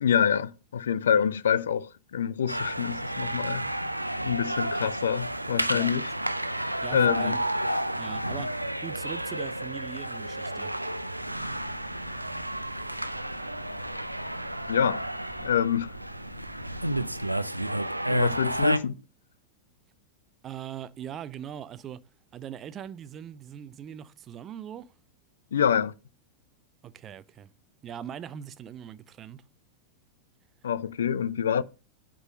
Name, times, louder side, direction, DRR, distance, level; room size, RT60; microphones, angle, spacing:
voice 1, 0.0-3.6 4.2-6.1 6.9-7.3 14.7-15.0 15.4-15.9 18.1-18.9 25.5-25.9 30.6-31.6, left 8 dB, 65° left, 0.4 m, -26 dB
sound 1, 2.5-18.8, right 1 dB, 85° right, 0.4 m, -31 dB
voice 2, 6.8-7.4 8.0-10.7 20.4-22.1 22.3-24.9 26.8-27.5 27.8-29.4, right 9 dB, 30° right, 0.5 m, -41 dB
sound 2, 11.3-17.3, left 1 dB, 40° left, 2.0 m, -52 dB
8.0 x 3.9 x 6.3 m
figure-of-eight pair, 90°, 0 cm